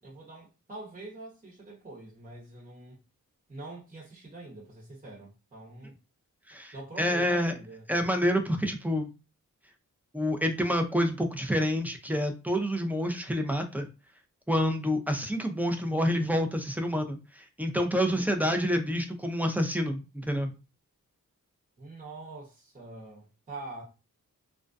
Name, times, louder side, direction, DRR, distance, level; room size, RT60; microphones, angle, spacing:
voice 1, 0.0-3.0 3.5-5.9 6.7-7.9 21.8-23.8, right 2 dB, 25° right, 1.0 m, -44 dB
voice 2, 6.5-7.5 7.9-9.1 10.1-13.9 14.5-20.5, equal, 5° right, 0.5 m, -28 dB
2.3 x 2.1 x 2.5 m
cardioid pair, 45°, 34 cm